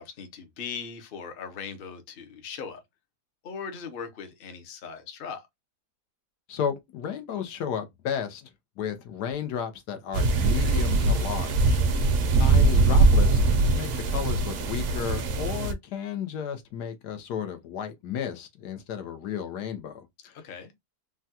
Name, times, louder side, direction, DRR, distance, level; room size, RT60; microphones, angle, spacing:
voice 1, 0.0-2.8 3.4-5.5 20.3-20.7, left 6 dB, 50° left, 0.7 m, -39 dB
voice 2, 6.5-8.5 8.8-11.8 12.3-13.4 13.8-20.4, left 8 dB, 85° left, 1.3 m, -33 dB
sound 1, 10.1-15.7, right 3 dB, 65° right, 0.7 m, -22 dB
3.5 x 2.2 x 2.7 m
omnidirectional pair, 1.7 m